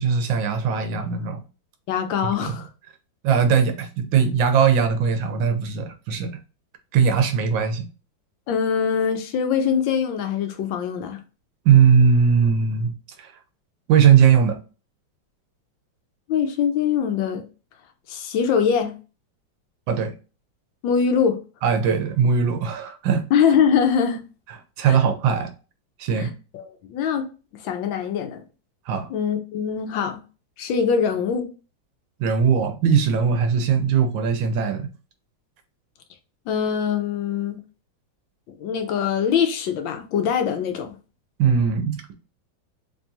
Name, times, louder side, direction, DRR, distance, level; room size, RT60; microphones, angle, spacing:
voice 1, 0.0-1.4 2.2-2.6 3.2-6.3 6.9-7.9 11.6-13.3 13.9-14.6 19.9-20.1 21.6-23.2 24.8-25.5 26.0-26.3 28.9-29.1 32.2-34.9 41.4-42.1, right 7 dB, 80° right, 1.4 m, -19 dB
voice 2, 1.9-2.7 8.5-11.2 16.3-17.5 18.1-19.0 20.8-21.4 23.3-24.2 24.9-25.0 26.2-27.2 27.6-28.4 29.1-30.2 30.6-31.5 36.5-37.6 38.6-40.9, left 7 dB, 80° left, 1.4 m, -23 dB
3.6 x 3.3 x 2.7 m
omnidirectional pair, 2.1 m